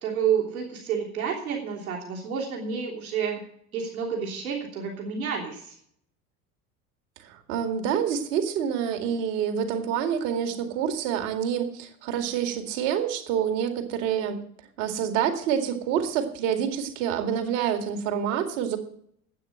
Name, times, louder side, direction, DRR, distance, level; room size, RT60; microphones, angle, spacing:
voice 1, 0.0-3.4 3.7-5.7, right 7 dB, 75° right, -1 dB, 3.2 m, -29 dB
voice 2, 7.2-14.4 14.8-18.8, right 8 dB, 60° right, 6 dB, 2.2 m, -27 dB
12.0 x 8.7 x 7.6 m, 0.67 s
figure-of-eight pair, 65°, 43 cm